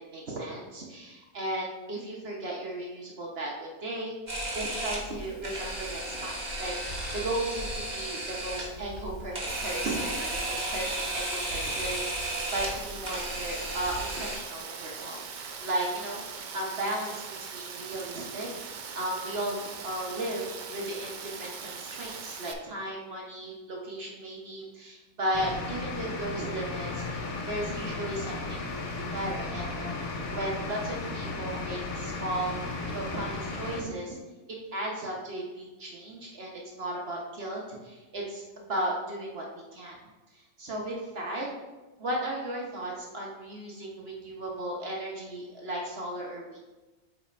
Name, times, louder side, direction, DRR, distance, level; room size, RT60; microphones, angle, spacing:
voice 1, 0.0-6.7 7.1-19.6 19.8-29.9 30.3-34.2 34.7-40.0 40.3-41.5 42.0-46.6, right 1 dB, 50° right, -2 dB, 1.1 m, -35 dB
Camera, 4.3-14.4, right 1 dB, 35° right, 1.3 m, -34 dB
Rain, 9.5-22.5, right 6 dB, 65° right, 0.4 m, -41 dB
sound 1, 25.3-33.8, left 3 dB, 85° left, 1.2 m, -35 dB
7.0 x 3.3 x 4.3 m, 1.1 s
omnidirectional pair, 1.4 m